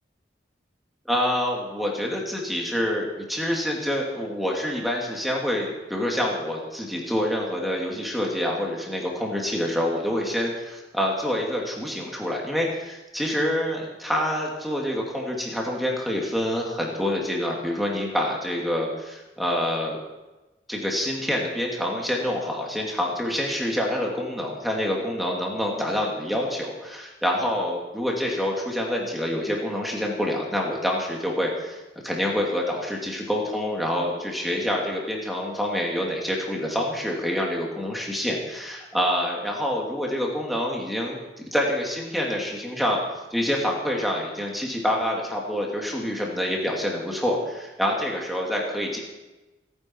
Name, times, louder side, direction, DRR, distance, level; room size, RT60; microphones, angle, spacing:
voice 1, 1.1-20.0 20.7-41.2 41.5-43.0 43.3-49.0, left 1 dB, ahead, -2 dB, 2.7 m, -27 dB
27.0 x 9.8 x 4.7 m, 1.1 s
head